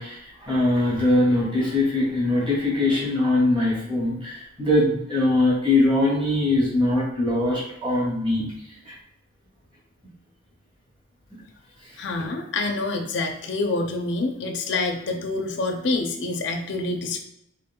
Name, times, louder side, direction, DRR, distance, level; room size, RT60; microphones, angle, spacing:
voice 1, 0.0-8.5 8.8-8.9, left 2 dB, 25° right, -4 dB, 1.6 m, -22 dB
voice 2, 12.0-17.2, left 3 dB, 65° left, 4 dB, 0.5 m, -27 dB
5.2 x 3.6 x 2.2 m, 0.78 s
head